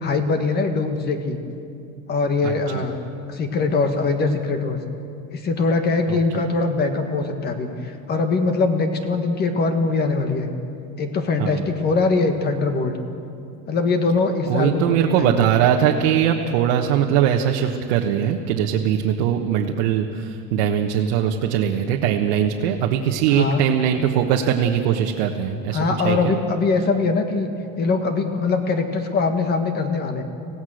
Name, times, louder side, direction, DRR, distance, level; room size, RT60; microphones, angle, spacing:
voice 1, 0.0-1.4 2.1-3.0 3.3-4.8 5.3-10.5 11.0-13.0 13.7-15.5 23.3-23.6 25.7-27.5 27.8-30.2, left 3 dB, 30° left, 6 dB, 1.7 m, -22 dB
voice 2, 2.4-2.8 6.1-6.4 11.4-11.6 14.5-26.3, right 9 dB, 90° right, 1 dB, 1.3 m, -21 dB
26.0 x 17.0 x 6.5 m, 2.5 s
cardioid pair, 165°, 33 cm